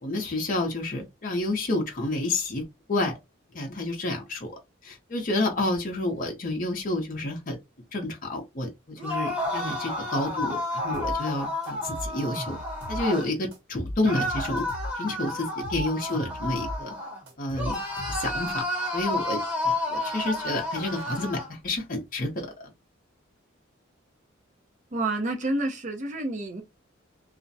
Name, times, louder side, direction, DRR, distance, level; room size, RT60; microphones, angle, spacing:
voice 1, 0.0-2.6 2.9-3.1 3.5-4.6 4.8-7.6 7.9-12.6 12.9-14.7 14.9-16.9 17.4-17.8 18.2-18.6 18.9-22.5, left 2 dB, 40° left, 0.6 m, -29 dB
sound 1, 9.0-13.3 14.0-17.2 17.5-21.5, left 1 dB, 5° right, 0.9 m, -31 dB
sound 2, 10.9-11.2 11.6-13.1 13.5-14.9 15.4-16.8 17.3-18.5, left 1 dB, 60° right, 1.2 m, -37 dB
voice 2, 24.9-26.6, right 2 dB, 35° right, 0.6 m, -29 dB
2.5 x 2.1 x 2.6 m
head